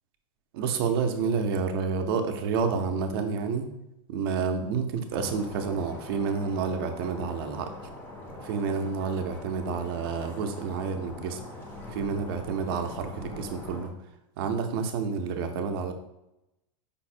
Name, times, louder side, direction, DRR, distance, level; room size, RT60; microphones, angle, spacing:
voice 1, 0.5-3.7 4.1-7.7 8.4-11.4 11.9-13.9 14.4-15.9, right 5 dB, 45° right, 6 dB, 0.5 m, -29 dB
sound 1, 5.1-13.9, left 1 dB, 10° left, 0.4 m, -43 dB
5.3 x 2.1 x 4.2 m, 0.87 s
supercardioid pair, 175°, 17 cm